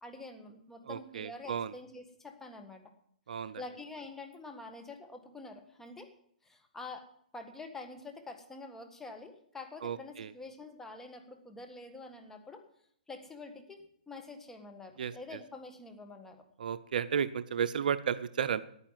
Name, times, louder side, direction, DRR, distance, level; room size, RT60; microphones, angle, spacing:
voice 1, 0.0-2.8 3.3-6.1 6.4-7.1 7.3-12.6 13.1-16.4, left 3 dB, 5° left, 5 dB, 1.6 m, -47 dB
voice 2, 0.9-1.7 3.3-3.6 9.8-10.3 15.0-15.4 16.6-18.6, right 7 dB, 70° right, 13 dB, 0.6 m, -33 dB
10.0 x 9.7 x 7.4 m, 0.68 s
hypercardioid pair, 145°, 5 cm